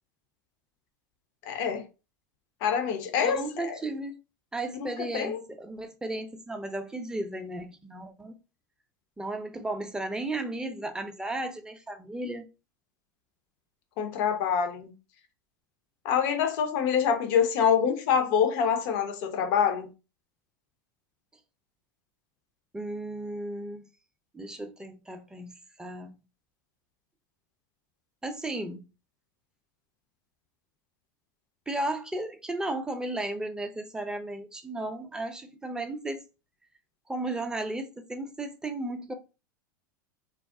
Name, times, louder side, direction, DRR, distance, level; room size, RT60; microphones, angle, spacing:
voice 1, 1.5-1.8 2.6-3.8 5.0-5.4 14.0-14.9 16.0-19.9, left 7 dB, 60° left, 0.7 m, -26 dB
voice 2, 3.2-4.2 4.5-8.4 9.2-12.5 22.7-23.9 24.3-26.2 28.2-28.9 31.7-36.2 37.1-39.1, right 2 dB, 5° right, 0.5 m, -34 dB
2.3 x 2.0 x 3.6 m
hypercardioid pair, 90°, 11 cm